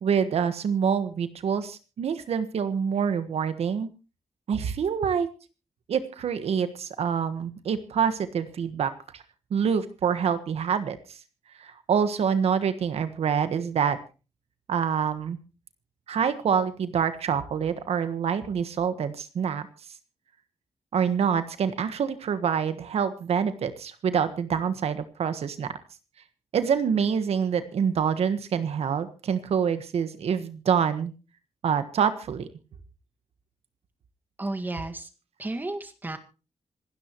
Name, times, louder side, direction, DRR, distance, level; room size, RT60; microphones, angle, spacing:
voice 1, 0.0-3.9 4.5-5.3 5.9-9.2 9.5-11.2 11.6-14.0 14.7-15.4 16.1-19.7 20.9-25.7 26.5-31.1 31.6-32.5, right 7 dB, 70° right, 11 dB, 1.4 m, -26 dB
voice 2, 34.4-35.1 35.4-36.2, right 2 dB, 15° right, 7 dB, 1.8 m, -32 dB
26.5 x 12.5 x 3.1 m, 0.33 s
wide cardioid pair, 165°, 11 cm